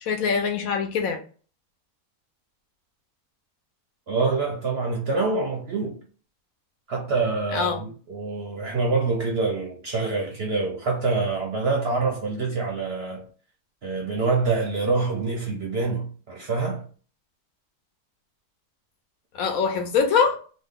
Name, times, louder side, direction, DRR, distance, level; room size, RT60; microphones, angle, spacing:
voice 1, 0.0-1.2 7.5-7.8 19.3-20.4, left 6 dB, 70° left, 1.1 m, -23 dB
voice 2, 4.1-6.0 6.9-13.3 13.8-16.9, right 3 dB, 60° right, 0.7 m, -26 dB
3.0 x 2.1 x 3.5 m
omnidirectional pair, 1.6 m